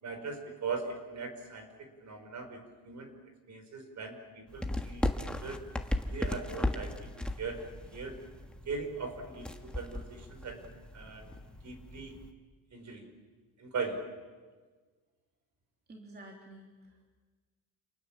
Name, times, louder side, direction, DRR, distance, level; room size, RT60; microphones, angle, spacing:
voice 1, 0.0-1.7 2.0-3.1 3.5-5.6 6.0-7.1 7.4-8.2 8.6-10.6 10.9-11.3 11.6-12.1 12.7-13.1 13.6-14.1, right 4 dB, 45° right, 6 dB, 4.9 m, -40 dB
sound 1, 4.5-12.3, left 1 dB, 5° left, 1.5 m, -37 dB
voice 2, 15.9-17.1, right 1 dB, 25° right, 0 dB, 3.3 m, -51 dB
29.5 x 27.5 x 7.4 m, 1.4 s
cardioid pair, 155°, 38 cm